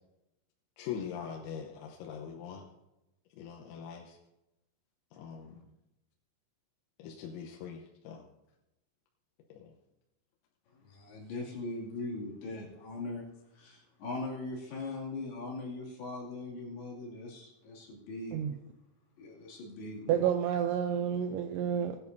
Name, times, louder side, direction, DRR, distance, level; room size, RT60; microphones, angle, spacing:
voice 1, 0.8-2.7 3.4-4.2 5.1-5.7 7.0-8.3 9.5-9.7, left 7 dB, 90° left, 0 dB, 3.7 m, -42 dB
voice 2, 10.7-13.3 13.5-18.4 19.2-20.2, left 2 dB, 55° left, -3 dB, 4.1 m, -40 dB
voice 3, 20.1-22.0, right 9 dB, 85° right, 6 dB, 2.6 m, -30 dB
20.0 x 10.5 x 2.7 m, 0.92 s
omnidirectional pair, 5.9 m